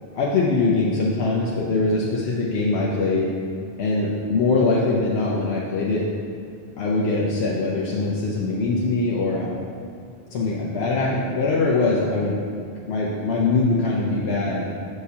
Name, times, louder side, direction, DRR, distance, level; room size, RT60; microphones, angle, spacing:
voice 1, 0.1-3.3 3.8-6.0 6.8-9.5 10.3-12.4 12.8-14.7, left 3 dB, 70° left, -4 dB, 0.9 m, -22 dB
6.7 x 6.4 x 2.8 m, 2.4 s
omnidirectional pair, 1.2 m